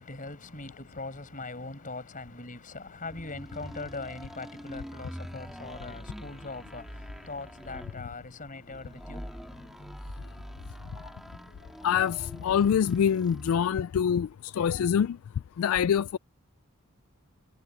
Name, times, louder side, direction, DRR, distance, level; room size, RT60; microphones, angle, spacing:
voice 1, 0.0-9.6, left 3 dB, 35° left, 5.8 m, -41 dB
sound 1, 3.0-13.8, equal, ahead, 1.8 m, -44 dB
voice 2, 11.8-15.2 15.6-16.2, left 8 dB, 65° left, 0.3 m, -25 dB
head